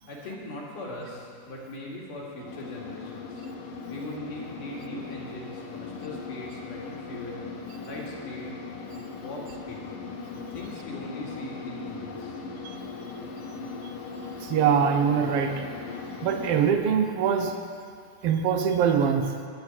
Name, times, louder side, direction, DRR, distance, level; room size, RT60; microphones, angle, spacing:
voice 1, 0.0-3.5 3.9-7.5 7.8-8.6 9.2-9.9 10.5-12.4, left 1 dB, 80° left, -4 dB, 3.9 m, -40 dB
sound 1, 2.5-16.7, left 4 dB, 60° left, 2.0 m, -39 dB
voice 2, 14.4-15.6 16.2-17.6 18.2-19.3, right 7 dB, 75° right, 6 dB, 1.4 m, -23 dB
20.0 x 10.0 x 4.5 m, 2.3 s
omnidirectional pair, 3.7 m